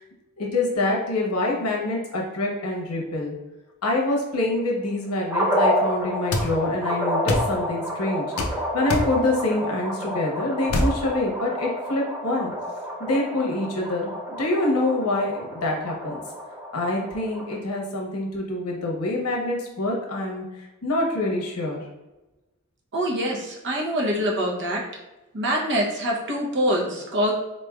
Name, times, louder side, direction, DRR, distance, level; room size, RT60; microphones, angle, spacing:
voice 1, 0.4-3.3 3.8-8.3 8.7-12.5 13.0-14.1 14.4-16.2 16.7-20.4 20.8-21.8, left 2 dB, 90° left, -1 dB, 1.0 m, -26 dB
sound 1, 5.3-17.6, equal, 5° right, 0.7 m, -29 dB
sound 2, 6.3-6.5 7.3-7.5 8.4-8.5 8.9-9.1 10.7-10.9, left 1 dB, 70° left, 0.5 m, -23 dB
voice 2, 22.9-24.8 25.3-27.3, equal, 55° right, -2 dB, 0.8 m, -24 dB
3.9 x 3.2 x 2.4 m, 1.0 s
head